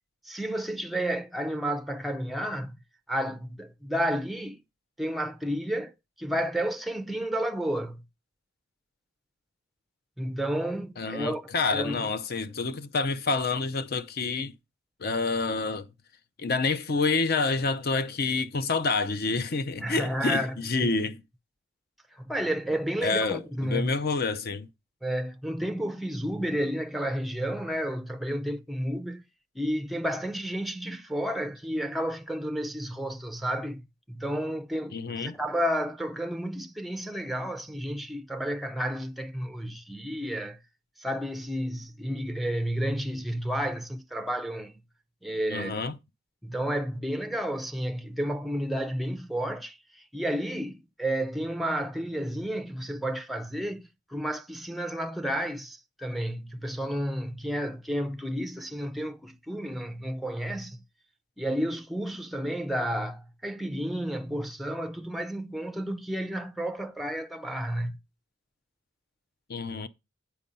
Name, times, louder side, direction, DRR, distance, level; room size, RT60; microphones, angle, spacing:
voice 1, 0.2-2.8 3.1-4.6 5.0-5.9 6.2-8.0 10.2-11.4 11.7-12.1 19.8-20.9 22.2-23.9 25.0-29.2 29.6-40.6 41.0-44.8 45.2-45.8 46.4-60.8 61.4-68.0, equal, ahead, 0.5 m, -31 dB
voice 2, 11.0-14.5 15.0-15.9 16.4-21.2 23.0-24.7 34.9-35.4 45.5-46.0 69.5-69.9, left 4 dB, 50° left, 0.6 m, -28 dB
8.7 x 4.6 x 5.4 m
head